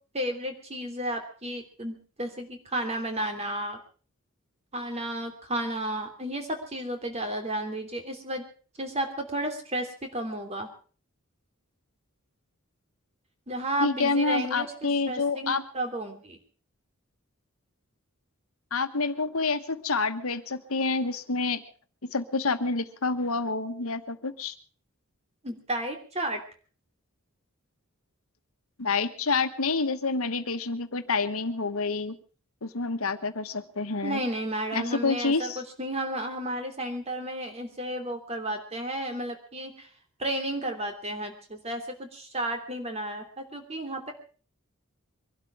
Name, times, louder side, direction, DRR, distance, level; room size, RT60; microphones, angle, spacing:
voice 1, 0.1-3.8 4.7-8.4 8.8-10.7 13.5-16.4 25.4-26.4 34.0-39.9 40.2-44.1, right 1 dB, 30° right, 4 dB, 3.1 m, -32 dB
voice 2, 13.8-15.6 18.7-21.6 22.1-24.5 28.8-32.2 32.6-34.2 34.7-35.6, left 3 dB, 75° left, 10 dB, 1.3 m, -28 dB
23.5 x 12.0 x 4.7 m, 0.40 s
head